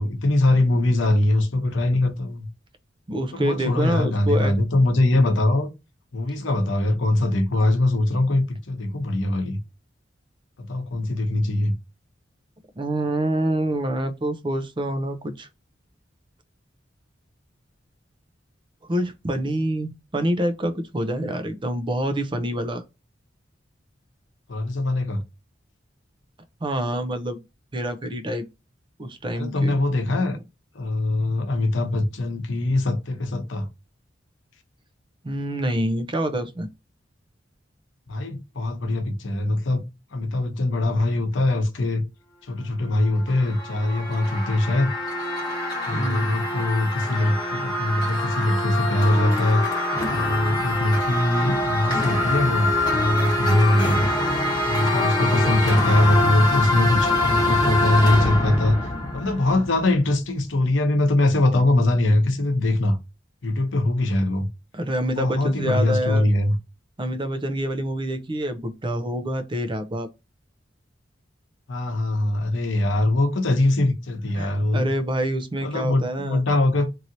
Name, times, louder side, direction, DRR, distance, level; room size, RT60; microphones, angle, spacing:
voice 1, 0.0-2.5 3.3-5.7 6.1-9.6 10.6-11.7 24.5-25.2 29.3-30.4 30.7-33.7 38.1-39.8 40.1-42.0 42.5-44.9 45.9-49.6 50.1-54.1 54.6-58.9 59.1-63.0 63.4-64.5 65.1-66.6 71.7-74.9 75.6-76.9, left 1 dB, 85° left, 0.8 m, -22 dB
voice 2, 3.1-4.6 5.1-5.4 12.8-15.5 18.8-22.8 26.6-27.4 27.7-28.4 29.0-29.8 30.1-30.4 35.2-36.7 45.9-46.4 55.1-55.6 64.7-66.2 67.0-70.1 74.3-76.4, right 1 dB, 25° right, 0.5 m, -26 dB
sound 1, 43.0-60.0, left 2 dB, 20° left, 1.0 m, -24 dB
3.0 x 2.8 x 2.6 m
head